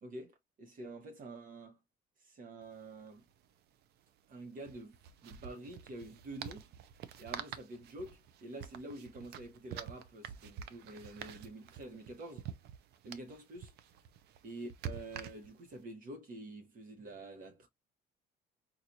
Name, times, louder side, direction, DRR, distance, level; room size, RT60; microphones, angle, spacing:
voice 1, 0.0-1.8 2.2-3.2 4.3-5.0 5.2-6.7 7.2-12.5 13.0-13.7 14.4-17.7, right 2 dB, 55° right, 1.1 m, -47 dB
sound 1, 2.6-2.7 2.9-3.1 4.6-15.8, right 8 dB, 75° right, 0.6 m, -48 dB
4.5 x 2.5 x 2.5 m
cardioid pair, 110°, 17 cm